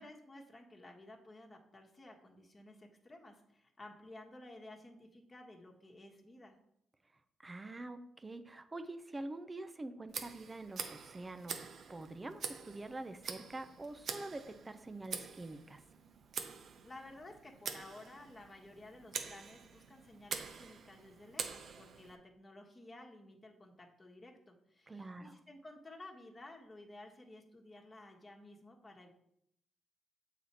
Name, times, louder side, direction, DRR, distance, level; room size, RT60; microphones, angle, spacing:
voice 1, 0.0-6.5 16.8-29.1, left 2 dB, 25° left, 1 dB, 1.3 m, -54 dB
voice 2, 7.4-11.6 11.9-15.8 24.9-25.4, right 2 dB, 25° right, 10 dB, 0.6 m, -46 dB
Tick, 10.1-22.2, right 6 dB, 60° right, 0.7 m, -46 dB
7.0 x 4.2 x 4.3 m, 0.76 s
supercardioid pair, 65°, 0 cm